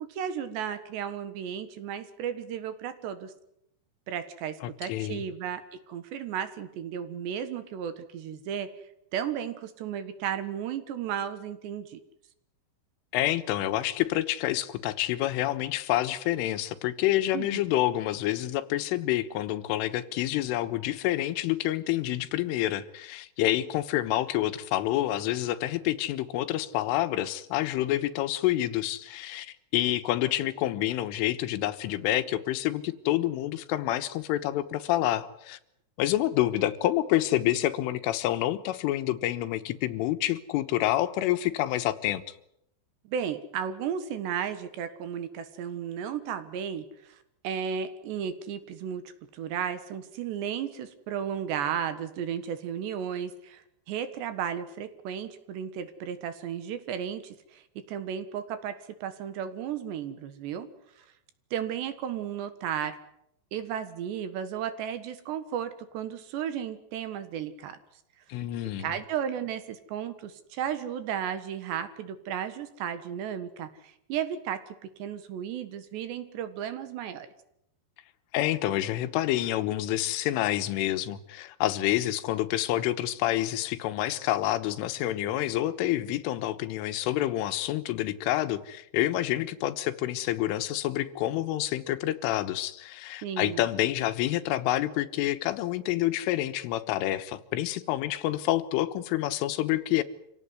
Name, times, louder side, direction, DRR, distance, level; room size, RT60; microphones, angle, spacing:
voice 1, 0.1-3.3 4.1-8.8 9.1-12.0 17.3-17.6 43.0-49.0 49.3-60.7 61.0-61.1 61.5-63.0 63.5-67.8 68.8-74.6 75.0-77.3 93.2-93.7, right 8 dB, 70° right, 3.4 m, -34 dB
voice 2, 4.9-5.2 13.1-35.6 36.0-42.2 68.3-69.0 78.3-100.0, left 14 dB, 85° left, 3.7 m, -28 dB
26.5 x 17.0 x 9.6 m
omnidirectional pair, 5.6 m